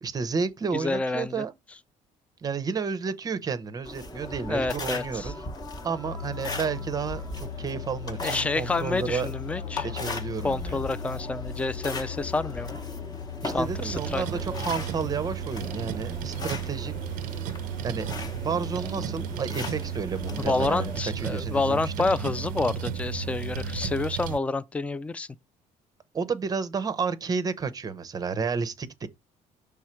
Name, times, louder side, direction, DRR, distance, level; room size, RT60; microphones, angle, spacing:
voice 1, 0.0-1.5 2.4-5.5 5.8-9.3 9.8-10.8 13.4-16.9 17.8-18.1 18.4-22.1 26.1-29.1, right 5 dB, 25° right, 0.6 m, -31 dB
voice 2, 0.7-1.4 4.5-5.3 8.2-9.9 10.4-12.8 13.5-14.2 20.5-25.3, left 3 dB, 10° left, 0.3 m, -28 dB
sound 1, 3.8-21.0, left 2 dB, 25° left, 0.9 m, -38 dB
sound 2, 6.0-24.1, left 9 dB, 75° left, 0.5 m, -40 dB
sound 3, 13.6-24.4, right 13 dB, 75° right, 0.4 m, -34 dB
6.3 x 3.4 x 4.4 m
cardioid pair, 155°, 14 cm